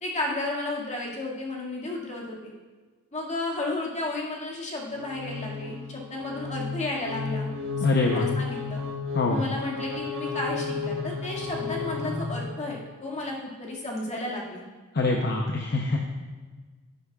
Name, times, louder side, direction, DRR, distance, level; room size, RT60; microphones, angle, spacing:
voice 1, 0.0-2.5 3.1-7.5 7.8-8.8 9.3-14.7, left 2 dB, 30° left, -3 dB, 2.0 m, -33 dB
sound 1, 4.9-12.8, left 4 dB, 60° right, 1.3 m, -33 dB
voice 2, 7.8-8.3 9.1-9.4 15.0-16.0, left 2 dB, 50° left, 1 dB, 0.8 m, -24 dB
12.0 x 10.0 x 2.4 m, 1.4 s
head